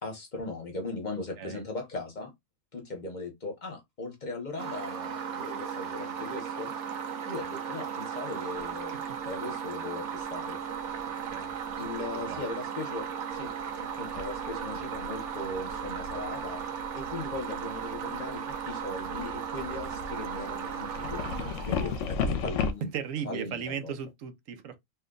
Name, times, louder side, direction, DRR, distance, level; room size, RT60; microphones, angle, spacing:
voice 1, 0.0-2.3 2.7-6.7 7.3-8.9 9.2-10.6 10.9-11.1 11.8-13.1 13.3-13.5 13.8-16.6 16.9-22.9 23.2-23.9, left 2 dB, 40° left, 0.9 m, -38 dB
sound 1, 4.6-22.6, right 7 dB, 70° right, 1.0 m, -36 dB
sound 2, 8.6-8.7 10.8-11.0 11.3-12.1 13.3-13.7 14.0-22.7, left 5 dB, 75° left, 0.9 m, -36 dB
voice 2, 11.1-11.5 11.8-12.4 22.8-24.8, right 8 dB, 90° right, 1.0 m, -37 dB
2.8 x 2.1 x 3.7 m
omnidirectional pair, 1.3 m